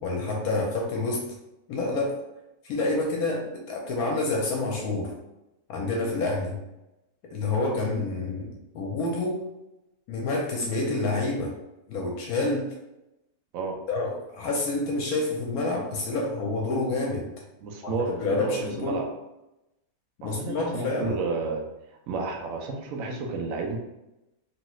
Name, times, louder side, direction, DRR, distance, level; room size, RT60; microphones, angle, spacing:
voice 1, 0.0-1.2 1.7-2.1 2.6-5.1 5.7-6.6 7.3-8.5 8.7-9.4 10.1-11.5 11.9-12.7 13.9-17.3 17.8-17.9 18.2-19.0 20.2-21.2, left 2 dB, 75° left, -1 dB, 1.1 m, -28 dB
voice 2, 17.6-19.0 20.2-21.6 22.1-23.8, right 4 dB, 70° right, 1 dB, 0.9 m, -31 dB
3.0 x 3.0 x 2.3 m, 0.94 s
omnidirectional pair, 1.6 m